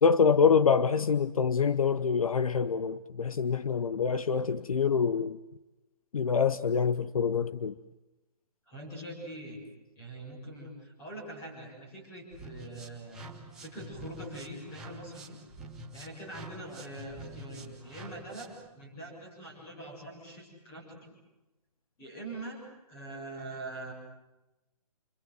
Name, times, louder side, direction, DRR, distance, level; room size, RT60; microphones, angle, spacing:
voice 1, 0.0-5.4 6.1-7.7, left 6 dB, 60° left, 0.9 m, -25 dB
voice 2, 8.7-9.6 10.0-13.2 13.6-15.4 15.9-21.2 22.0-22.6 22.9-23.9, right 1 dB, 10° left, 6.9 m, -43 dB
sound 1, 12.3-18.7, right 1 dB, 5° right, 1.2 m, -47 dB
28.5 x 24.5 x 7.8 m
hypercardioid pair, 175°, 20 cm